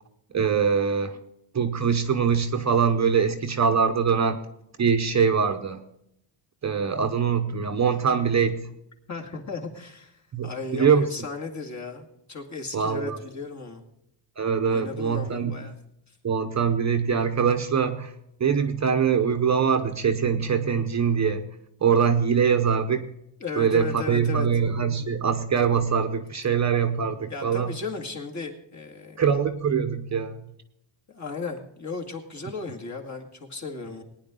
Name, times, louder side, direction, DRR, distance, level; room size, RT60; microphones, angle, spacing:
voice 1, 0.3-1.2 1.5-4.4 4.8-5.8 6.6-8.7 10.3-11.1 12.7-13.2 14.4-15.6 16.2-18.1 18.4-21.6 21.8-23.1 23.6-27.8 29.2-30.4, right 6 dB, 35° right, 8 dB, 0.9 m, -23 dB
voice 2, 9.1-13.8 14.6-15.7 23.4-24.5 27.3-29.2 31.1-34.0, left 4 dB, 35° left, 2 dB, 2.2 m, -35 dB
19.0 x 10.0 x 3.8 m, 0.79 s
cardioid pair, 140°, 49 cm